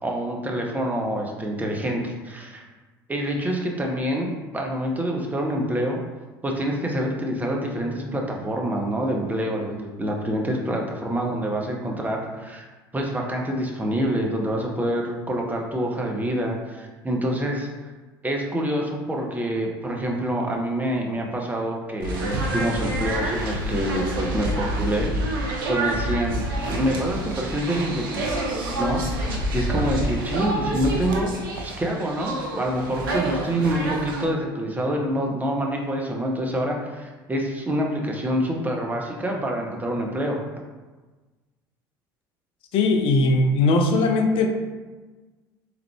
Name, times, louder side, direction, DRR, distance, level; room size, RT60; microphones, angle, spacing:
voice 1, 0.0-2.6 3.1-6.0 6.4-12.7 12.9-17.7 18.2-28.2 28.7-31.3 31.6-40.4, right 1 dB, 15° right, 0 dB, 0.7 m, -26 dB
sound 1, 22.0-34.2, right 1 dB, 75° right, 0.6 m, -28 dB
voice 2, 42.7-44.5, left 2 dB, 50° left, 4 dB, 0.5 m, -19 dB
3.5 x 3.3 x 2.2 m, 1.3 s
figure-of-eight pair, 65°, 12 cm